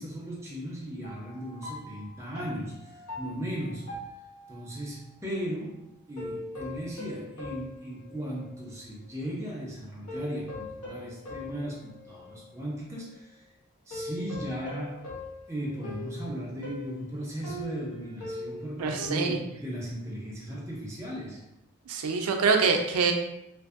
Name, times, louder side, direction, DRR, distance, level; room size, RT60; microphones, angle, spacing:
voice 1, 0.0-4.0 4.5-13.4 13.9-15.1 15.5-21.4, equal, 15° right, -4 dB, 0.5 m, -37 dB
sound 1, 1.0-4.8 6.2-8.7 9.2-9.3 10.1-12.6 13.9-19.1, left 2 dB, 90° left, 0.9 m, -41 dB
voice 2, 18.8-19.4 21.9-23.1, right 5 dB, 80° right, 4 dB, 0.4 m, -25 dB
2.6 x 2.5 x 2.4 m, 0.83 s
head